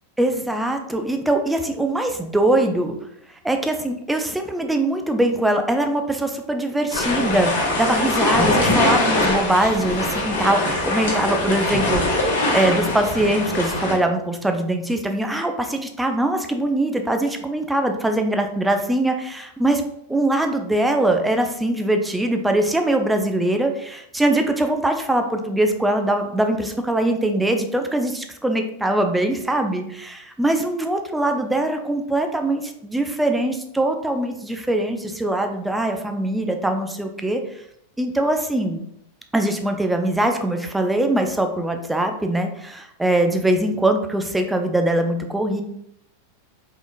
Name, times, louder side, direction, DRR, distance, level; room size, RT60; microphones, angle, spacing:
voice 1, 0.2-2.9 3.4-19.8 20.1-37.6 38.0-38.8 39.3-45.6, right 1 dB, 5° right, 5 dB, 0.5 m, -22 dB
sound 1, 6.9-13.9, left 2 dB, 55° left, 1.5 m, -22 dB
4.9 x 3.8 x 2.4 m, 0.74 s
figure-of-eight pair, 90°, 0 cm